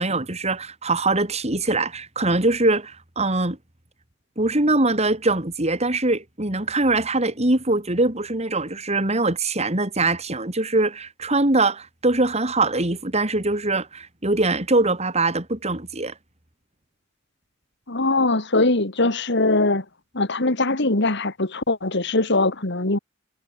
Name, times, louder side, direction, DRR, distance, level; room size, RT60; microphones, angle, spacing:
voice 1, 0.0-3.6 4.4-16.1, right 2 dB, 35° right, 3.3 m, -22 dB
voice 2, 17.9-19.8 20.1-23.0, left 2 dB, 60° left, 2.5 m, -21 dB
head